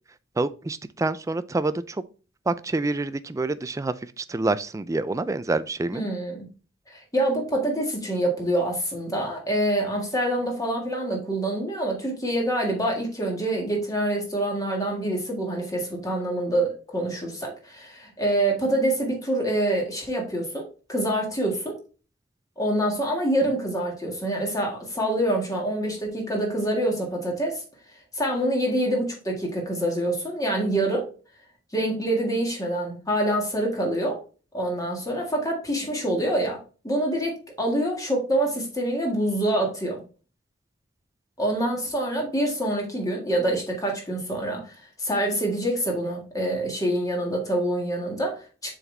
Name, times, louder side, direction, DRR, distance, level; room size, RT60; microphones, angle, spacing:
voice 1, 0.4-2.0 2.5-6.0, right 2 dB, 15° right, 0.3 m, -27 dB
voice 2, 5.9-6.5 6.9-21.8 22.6-27.6 28.1-31.1 31.7-34.2 34.5-36.6 36.8-40.0 41.4-48.7, right 1 dB, 20° left, 1.8 m, -26 dB
7.1 x 4.1 x 3.3 m
head